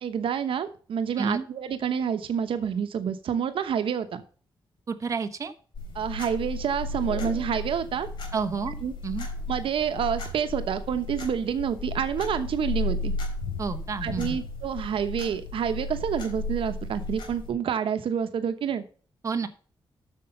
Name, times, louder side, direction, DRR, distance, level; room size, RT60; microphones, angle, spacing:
voice 1, 0.0-4.2 5.9-8.1 8.8-8.9 9.5-13.1 14.0-18.8, right 8 dB, 80° right, 10 dB, 1.0 m, -28 dB
voice 2, 4.9-5.5 8.3-8.8 9.0-9.3 13.6-14.4 19.2-19.5, right 5 dB, 35° right, 8 dB, 1.0 m, -29 dB
sound 1, 5.7-17.5, left 2 dB, 60° left, 3.9 m, -34 dB
8.4 x 6.7 x 5.5 m, 0.41 s
wide cardioid pair, 160°, 9 cm